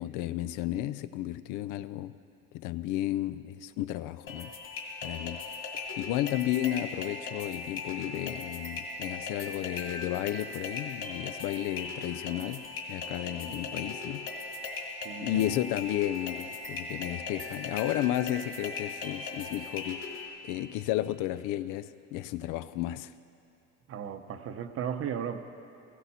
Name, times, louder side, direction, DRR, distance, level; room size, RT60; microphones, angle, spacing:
voice 1, 0.0-2.2 2.5-4.5 5.0-5.4 6.0-12.6 12.9-14.3 15.2-20.1 20.4-23.1, left 14 dB, 70° left, 14 dB, 0.5 m, -33 dB
sound 1, 4.3-20.3, left 3 dB, 40° left, 2.2 m, -39 dB
voice 2, 13.5-13.9 15.0-15.6 23.9-25.4, right 8 dB, 45° right, 8 dB, 0.8 m, -36 dB
16.5 x 16.0 x 4.2 m, 2.6 s
cardioid pair, 135°, 32 cm